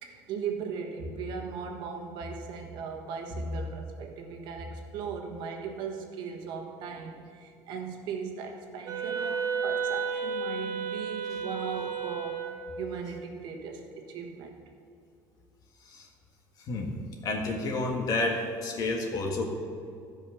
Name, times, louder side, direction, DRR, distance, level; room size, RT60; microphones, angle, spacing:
voice 1, 0.0-12.4 12.8-14.6, right 5 dB, 70° right, 3 dB, 1.4 m, -37 dB
Wind instrument woodwind instrument, 8.8-12.7, right 6 dB, 50° right, 1.6 m, -32 dB
voice 2, 17.2-19.4, left 2 dB, 50° left, 1 dB, 1.7 m, -30 dB
14.5 x 5.4 x 5.7 m, 2.5 s
cardioid pair, 120°, 8 cm